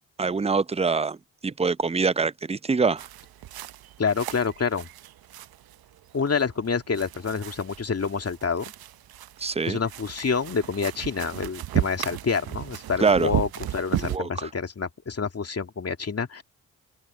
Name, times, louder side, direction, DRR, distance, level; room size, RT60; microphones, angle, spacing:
voice 1, 0.2-1.2 1.4-3.0 9.4-9.8 13.0-13.3 14.0-14.5, right 4 dB, 15° right, 0.6 m, -24 dB
sound 1, 3.0-14.2, right 13 dB, 70° right, 1.0 m, -35 dB
voice 2, 4.0-4.9 6.1-8.7 9.7-16.4, left 5 dB, 40° left, 2.3 m, -27 dB
open air
hypercardioid pair, 45°, 38 cm